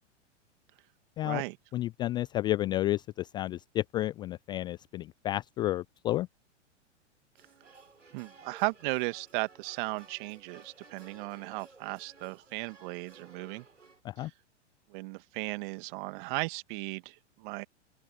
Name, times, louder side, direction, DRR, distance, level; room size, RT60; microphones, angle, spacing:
voice 1, 1.2-1.6 8.1-13.7 14.2-14.3 14.9-17.7, right 27 dB, 45° right, 2.0 m, -36 dB
voice 2, 1.7-6.3 14.0-14.3, left 15 dB, 15° left, 0.3 m, -31 dB
sound 1, 7.4-14.0, right 4 dB, 85° right, 5.0 m, -56 dB
open air
figure-of-eight pair, 105°, 36 cm